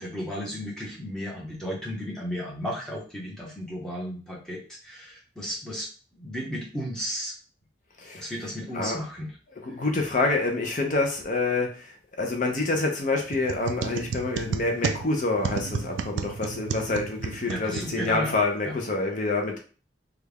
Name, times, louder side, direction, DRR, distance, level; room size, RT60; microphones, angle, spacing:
voice 1, 0.0-5.9 6.1-7.4 8.1-9.3 17.5-18.3 18.6-18.7, equal, 5° left, -5 dB, 1.0 m, -34 dB
voice 2, 9.7-11.9 12.2-19.6, left 3 dB, 40° left, 2 dB, 0.5 m, -27 dB
sound 1, 13.3-18.4, right 6 dB, 80° right, 0.3 m, -32 dB
3.3 x 2.3 x 3.4 m, 0.38 s
head